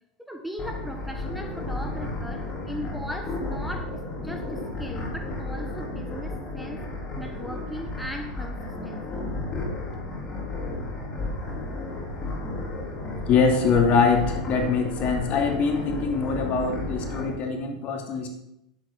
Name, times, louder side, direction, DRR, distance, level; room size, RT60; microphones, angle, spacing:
voice 1, 0.2-6.8 7.2-9.3, equal, ahead, 4 dB, 1.3 m, -38 dB
sound 1, 0.6-17.3, left 2 dB, 30° left, 3.9 m, -33 dB
voice 2, 13.3-18.3, left 5 dB, 45° left, 3 dB, 2.6 m, -23 dB
11.0 x 8.0 x 5.8 m, 0.82 s
hypercardioid pair, 95°, 3 cm